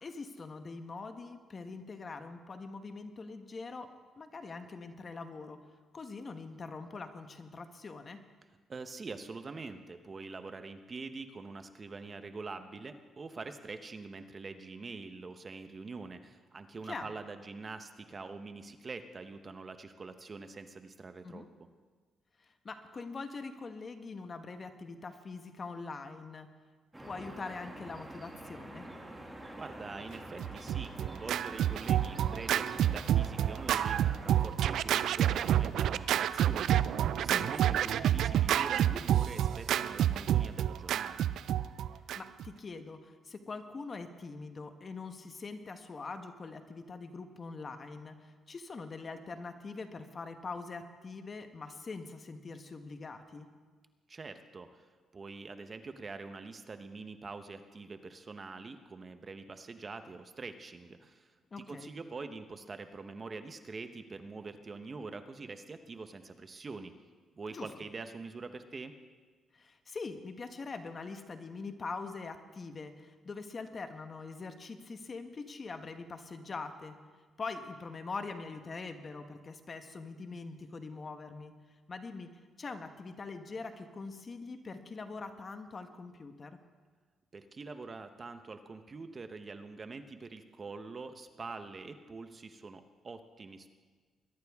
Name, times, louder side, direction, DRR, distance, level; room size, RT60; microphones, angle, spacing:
voice 1, 0.0-3.9 4.2-5.6 5.9-8.2 16.9-17.1 21.2-21.5 22.4-26.5 27.0-28.9 37.3-37.5 42.1-53.5 61.5-61.9 67.5-67.7 69.5-76.9 77.4-81.5 81.9-82.3 82.6-86.6, left 4 dB, 40° left, 7 dB, 1.2 m, -43 dB
voice 2, 8.7-21.4 29.6-41.3 54.1-54.8 55.1-61.3 61.6-66.9 67.4-68.9 87.3-93.7, right 4 dB, 35° right, 8 dB, 0.9 m, -45 dB
sound 1, 26.9-34.5, right 1 dB, 10° right, 2.3 m, -47 dB
Scratching (performance technique), 30.4-42.5, right 11 dB, 75° right, 0.4 m, -29 dB
22.0 x 11.5 x 3.6 m, 1.5 s
cardioid pair, 90°, 0 cm